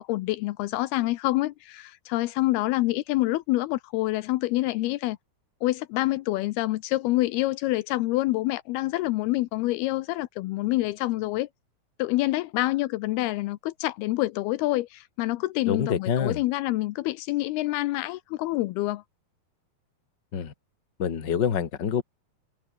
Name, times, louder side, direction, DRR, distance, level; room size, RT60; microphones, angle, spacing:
voice 1, 0.0-5.2 5.6-11.5 12.0-19.0, left 18 dB, 80° left, 2.6 m, -27 dB
voice 2, 15.7-16.4 20.3-20.5 21.0-22.0, left 7 dB, 35° left, 2.0 m, -26 dB
omnidirectional pair, 4.7 m